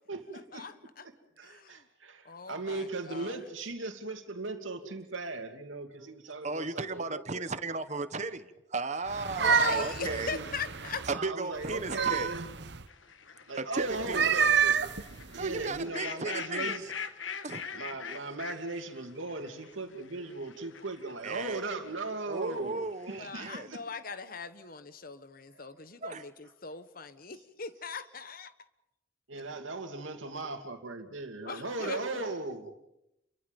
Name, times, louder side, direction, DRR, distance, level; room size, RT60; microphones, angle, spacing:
voice 1, 0.1-0.7 1.0-7.5 9.7-10.5 11.1-12.5 13.5-14.8 15.3-16.9 17.7-23.8 25.5-25.7 29.3-32.7, right 3 dB, 85° right, 5 dB, 2.7 m, -38 dB
voice 2, 1.4-1.8 2.2-3.4 9.3-11.1 23.2-28.5 31.5-32.2, left 5 dB, 45° left, 12 dB, 1.2 m, -40 dB
voice 3, 6.4-10.3 11.1-12.3 13.6-14.2 15.4-16.8 17.4-17.6 21.2-21.6 22.3-23.7 26.0-26.2, right 3 dB, 35° right, 12 dB, 1.2 m, -35 dB
sound 1, 9.1-11.2 11.6-12.8 14.0-15.8, right 7 dB, 60° right, 1.0 m, -29 dB
sound 2, 12.9-22.0 22.5-23.2, left 6 dB, 80° left, 1.3 m, -43 dB
29.5 x 23.5 x 5.4 m, 0.88 s
head